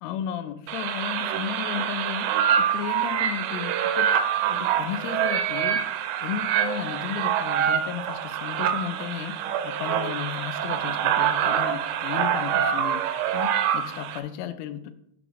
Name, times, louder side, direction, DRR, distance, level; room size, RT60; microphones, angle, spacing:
voice 1, 0.0-4.1 4.5-5.8 6.2-14.9, left 10 dB, 85° left, 10 dB, 3.1 m, -34 dB
sound 1, 0.7-14.2, right 9 dB, 85° right, 2.6 m, -25 dB
8.2 x 3.9 x 6.0 m, 0.74 s
omnidirectional pair, 5.6 m